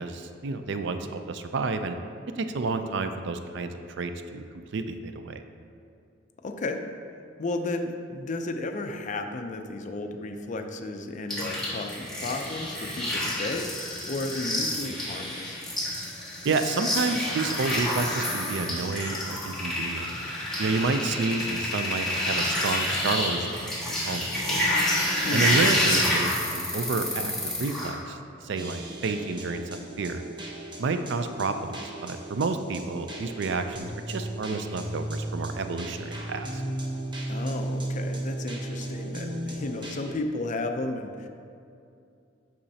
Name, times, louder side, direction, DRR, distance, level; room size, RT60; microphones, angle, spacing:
voice 1, 0.0-2.0 2.4-4.5 4.7-5.4 16.4-20.1 20.6-24.8 25.3-28.2 28.4-30.2 30.8-36.6, right 3 dB, 65° right, 8 dB, 0.4 m, -30 dB
voice 2, 6.4-6.8 7.4-15.6 25.2-25.6 37.3-41.3, left 2 dB, 40° left, 5 dB, 0.4 m, -33 dB
sound 1, 11.3-27.9, left 1 dB, 5° left, 1.4 m, -28 dB
sound 2, 28.6-40.1, right 1 dB, 25° right, 0.8 m, -35 dB
8.6 x 6.1 x 2.8 m, 2.5 s
head